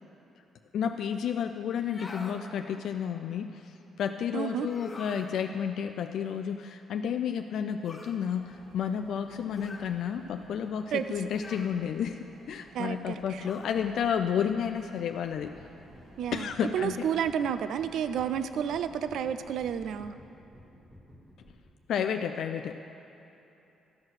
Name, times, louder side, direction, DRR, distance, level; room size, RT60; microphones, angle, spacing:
voice 1, 0.7-12.2 12.5-15.5 16.3-17.1 21.9-22.7, left 8 dB, 70° left, 7 dB, 0.3 m, -31 dB
sound 1, 1.8-2.4 4.6-5.3 7.8-8.2 9.5-9.9 11.3-11.8 13.4-13.7, left 3 dB, 30° left, 1.0 m, -44 dB
voice 2, 4.3-4.7 10.9-11.1 12.7-13.4 16.2-20.1, right 8 dB, 75° right, 12 dB, 0.4 m, -31 dB
sound 2, 8.3-19.9, right 1 dB, 60° right, 2.1 m, -56 dB
sound 3, 15.2-21.8, equal, 20° right, 1.5 m, -54 dB
13.0 x 4.7 x 6.1 m, 3.0 s
cardioid pair, 90°, 0 cm